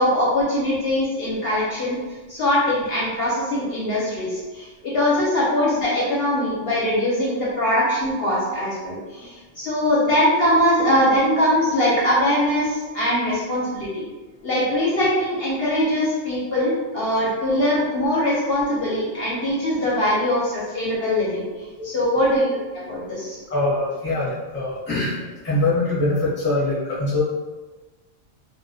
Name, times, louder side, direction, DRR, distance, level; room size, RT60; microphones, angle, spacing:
voice 1, 0.0-2.0 2.3-14.0 14.4-21.5 21.8-23.4, left 1 dB, 60° left, -7 dB, 0.7 m, -22 dB
voice 2, 23.5-25.2 25.4-27.2, left 2 dB, 15° left, -8 dB, 0.5 m, -23 dB
2.2 x 2.1 x 2.6 m, 1.2 s
omnidirectional pair, 1.3 m